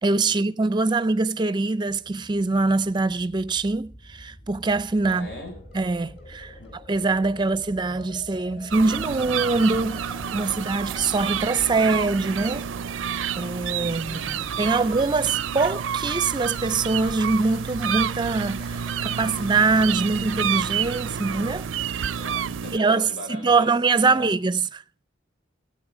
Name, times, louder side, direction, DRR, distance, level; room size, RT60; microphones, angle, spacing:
voice 1, 0.0-5.3 5.7-6.5 6.9-12.7 13.4-14.2 14.6-21.7 21.9-22.2 22.7-24.8, right 3 dB, 25° right, 0.5 m, -23 dB
sound 1, 1.9-14.3, right 1 dB, 55° left, 7.5 m, -51 dB
voice 2, 5.0-5.6 6.5-6.8 13.8-14.5 15.2-15.3 22.2-23.7 24.1-24.3, left 1 dB, 85° left, 5.6 m, -40 dB
sound 2, 5.0-21.1 23.0-23.3, left 2 dB, 35° left, 3.5 m, -47 dB
sound 3, 8.7-22.8, right 8 dB, 85° right, 0.5 m, -29 dB
15.5 x 8.6 x 4.9 m
head